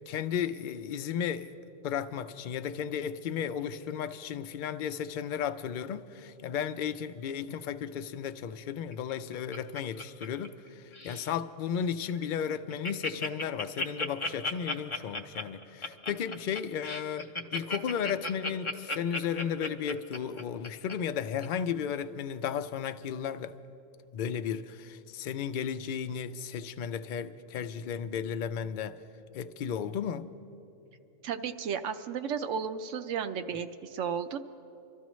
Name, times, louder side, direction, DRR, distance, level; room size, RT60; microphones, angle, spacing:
voice 1, 0.0-1.5 1.8-23.5 24.1-29.0 29.3-30.3, left 8 dB, 70° left, 0.4 m, -34 dB
Laughter, 8.9-10.7 10.9-11.3 11.8-11.9 12.2-12.3 12.5-20.9 21.4-21.5, left 2 dB, 30° left, 0.6 m, -35 dB
voice 2, 31.2-34.4, right 7 dB, 70° right, 0.9 m, -33 dB
26.5 x 13.0 x 3.1 m
omnidirectional pair, 1.4 m